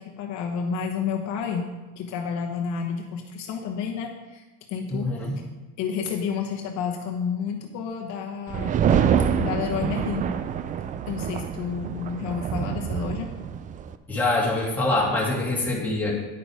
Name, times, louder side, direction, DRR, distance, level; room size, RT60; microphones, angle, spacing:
voice 1, 0.0-4.4 4.7-5.1 5.8-8.8 9.4-10.3 11.1-13.3, left 6 dB, 60° left, 1 dB, 1.2 m, -30 dB
voice 2, 4.9-5.3 14.1-16.1, left 2 dB, 5° left, -5 dB, 2.3 m, -24 dB
sound 1, 8.5-13.9, right 8 dB, 25° right, 0.3 m, -26 dB
9.8 x 6.4 x 4.8 m, 1.1 s
cardioid pair, 140°, 33 cm